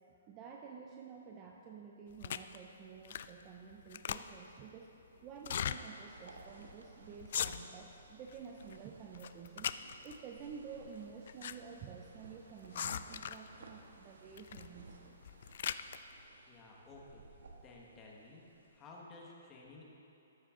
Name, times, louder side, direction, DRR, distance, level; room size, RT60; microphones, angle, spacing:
voice 1, 0.1-4.9 5.2-9.7 10.0-15.2, right 6 dB, 20° right, 1 dB, 0.5 m, -51 dB
sound 1, 2.2-2.6 3.0-3.4 3.7-4.5 5.4-5.8 6.3-6.4 6.6-6.8 7.2-7.9 8.3-8.8 9.1-10.2 11.0-11.6 11.8-11.9 12.7-13.5 14.4-14.7 15.1-16.0, left 9 dB, 45° left, 0.3 m, -39 dB
sound 2, 5.5-18.9, right 3 dB, 85° right, 1.4 m, -59 dB
voice 2, 16.5-18.4 18.7-19.8, left 3 dB, 15° left, -3 dB, 1.4 m, -54 dB
14.0 x 10.0 x 3.8 m, 3.0 s
hypercardioid pair, 170°, 0 cm